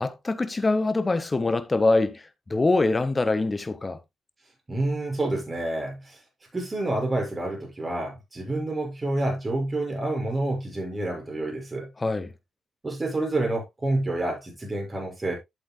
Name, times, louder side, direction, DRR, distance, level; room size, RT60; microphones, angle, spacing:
voice 1, 0.0-4.0 12.0-12.3, left 3 dB, 30° left, 1.4 m, -24 dB
voice 2, 4.7-6.2 6.5-11.9 12.8-15.4, right 2 dB, 30° right, 6.3 m, -28 dB
11.5 x 8.0 x 2.3 m
hypercardioid pair, 40°, 0 cm